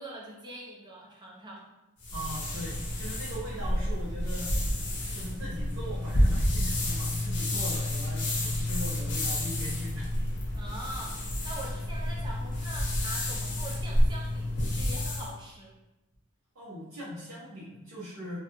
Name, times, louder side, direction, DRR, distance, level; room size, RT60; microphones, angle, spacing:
voice 1, 0.0-1.7 10.5-15.7, right 1 dB, 20° right, -4 dB, 0.5 m, -43 dB
sound 1, 2.0-15.3, left 1 dB, 55° left, 0.9 m, -29 dB
voice 2, 2.1-4.8 5.1-10.1 16.5-18.4, equal, 70° right, -11 dB, 0.8 m, -40 dB
3.0 x 2.3 x 2.8 m, 1.0 s
head